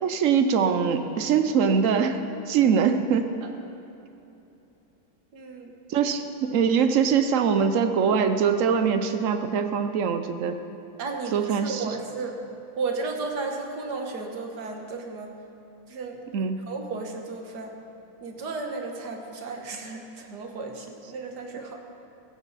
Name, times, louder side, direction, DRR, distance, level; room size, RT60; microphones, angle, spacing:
voice 1, 0.0-3.3 5.9-10.6 11.3-11.8 16.3-16.6, right 6 dB, 75° right, 8 dB, 0.7 m, -23 dB
voice 2, 5.3-5.7 11.0-12.4 12.8-15.3 15.9-16.2 16.7-17.7 18.2-21.8, right 4 dB, 55° right, 3 dB, 1.9 m, -34 dB
16.0 x 15.5 x 4.1 m, 2.9 s
omnidirectional pair, 2.2 m